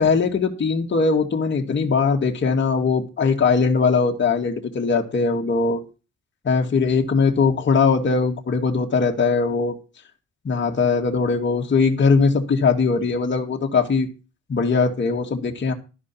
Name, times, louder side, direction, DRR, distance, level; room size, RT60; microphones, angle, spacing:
voice 1, 0.0-5.8 6.4-9.8 10.4-14.1 14.5-15.7, left 4 dB, 40° left, 1 dB, 2.2 m, -20 dB
13.0 x 5.1 x 8.5 m, 0.32 s
cardioid pair, 90°, 30 cm